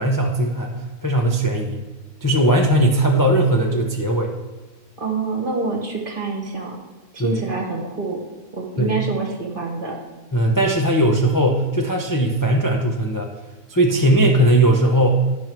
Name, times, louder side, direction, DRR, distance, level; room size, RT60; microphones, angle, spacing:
voice 1, 0.0-1.8 2.2-4.3 7.2-7.4 8.8-9.0 10.3-13.3 13.7-15.2, right 1 dB, 20° left, 0 dB, 0.5 m, -18 dB
voice 2, 5.0-6.8 7.1-8.2 8.5-10.0, right 3 dB, 35° right, 0 dB, 1.5 m, -26 dB
12.0 x 5.5 x 4.6 m, 1.2 s
omnidirectional pair, 1.7 m